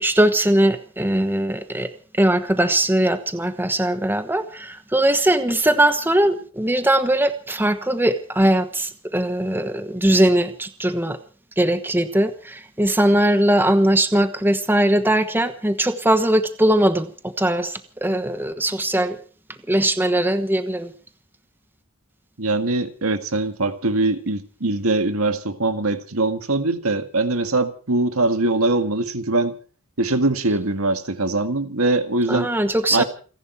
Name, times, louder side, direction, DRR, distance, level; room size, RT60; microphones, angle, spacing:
voice 1, 0.0-1.9 2.2-11.2 11.6-19.2 19.7-20.9 32.3-33.0, right 1 dB, 10° right, 1.1 m, -20 dB
voice 2, 22.4-29.6 30.0-32.5 32.9-33.0, right 2 dB, 70° right, 1.9 m, -22 dB
29.0 x 11.0 x 4.6 m
head